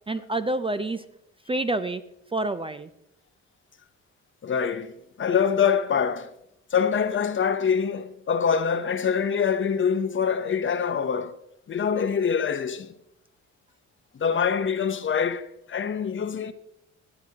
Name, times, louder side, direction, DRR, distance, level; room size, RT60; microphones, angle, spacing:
voice 1, 0.1-1.0 1.5-2.0 2.3-2.9, right 2 dB, 20° right, 0.4 m, -27 dB
voice 2, 4.4-6.3 6.7-11.3 11.7-12.9 14.1-16.5, left 7 dB, 40° left, 0.8 m, -25 dB
19.0 x 7.8 x 2.9 m
cardioid pair, 90°, 30 cm